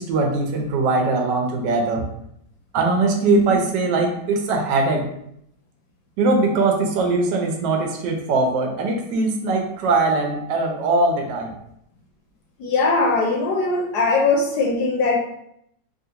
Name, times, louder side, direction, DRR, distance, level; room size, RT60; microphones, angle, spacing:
voice 1, 0.0-2.0 2.7-5.0 6.2-11.5, right 3 dB, 80° right, 2 dB, 1.2 m, -21 dB
voice 2, 12.6-15.2, left 3 dB, 75° left, 1 dB, 1.1 m, -20 dB
3.2 x 2.4 x 2.7 m, 0.74 s
omnidirectional pair, 1.9 m